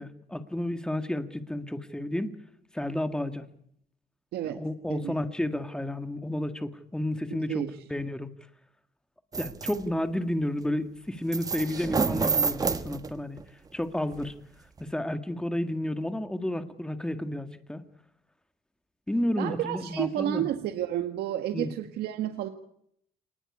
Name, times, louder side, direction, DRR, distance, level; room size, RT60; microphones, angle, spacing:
voice 1, 0.0-2.3 2.7-3.4 4.4-7.6 7.9-8.3 9.4-13.4 13.7-14.3 14.8-17.8 19.1-20.4 21.5-21.7, left 1 dB, 5° left, 9 dB, 1.8 m, -31 dB
voice 2, 4.3-5.1 7.3-7.8 19.4-22.5, right 12 dB, 90° right, 6 dB, 1.7 m, -31 dB
sound 1, 9.3-9.8 11.3-13.4 14.1-14.3 14.8-14.9, right 4 dB, 25° right, 1.4 m, -28 dB
28.0 x 19.5 x 9.7 m, 0.74 s
cardioid pair, 140°, 16 cm